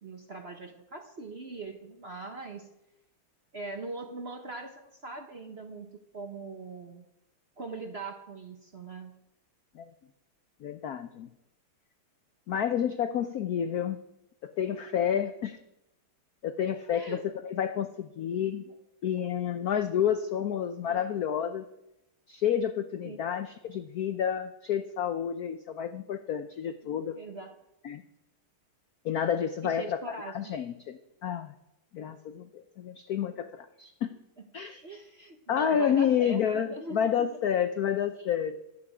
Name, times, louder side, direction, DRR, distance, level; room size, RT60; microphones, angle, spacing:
voice 1, 0.0-2.7 3.5-7.0 7.6-9.2 16.9-17.2 17.8-17.9 18.6-18.7 20.8-21.0 23.0-23.2 26.8-27.6 29.6-30.5 33.3-33.4 34.8-37.3, right 3 dB, 40° right, 4 dB, 0.9 m, -41 dB
voice 2, 10.6-11.3 12.5-14.0 14.4-15.6 16.4-18.6 19.0-21.6 22.3-27.2 27.8-28.0 29.0-31.5 31.9-34.2 34.5-34.8 35.5-38.6, left 8 dB, 75° left, 9 dB, 0.8 m, -30 dB
22.0 x 8.4 x 5.0 m, 0.88 s
omnidirectional pair, 2.4 m